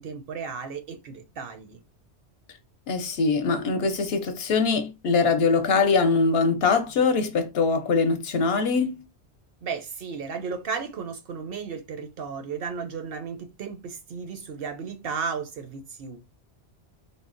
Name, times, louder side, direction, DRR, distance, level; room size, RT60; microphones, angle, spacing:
voice 1, 0.0-1.8 9.6-16.2, right 5 dB, 65° right, 0.7 m, -34 dB
voice 2, 2.9-9.0, left 4 dB, 65° left, 0.8 m, -23 dB
3.7 x 2.0 x 2.4 m
omnidirectional pair, 1.2 m